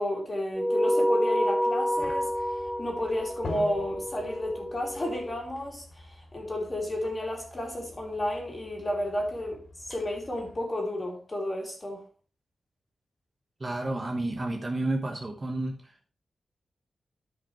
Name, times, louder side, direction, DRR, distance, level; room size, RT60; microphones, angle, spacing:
voice 1, 0.0-2.3 2.8-12.0, left 1 dB, 25° left, 2.8 m, -32 dB
sound 1, 0.5-5.3, equal, 5° left, 1.9 m, -28 dB
sound 2, 1.9-10.6, left 2 dB, 55° left, 2.6 m, -46 dB
voice 2, 13.6-16.1, right 2 dB, 30° right, 1.2 m, -31 dB
14.0 x 5.3 x 3.2 m
wide cardioid pair, 155°, 0 cm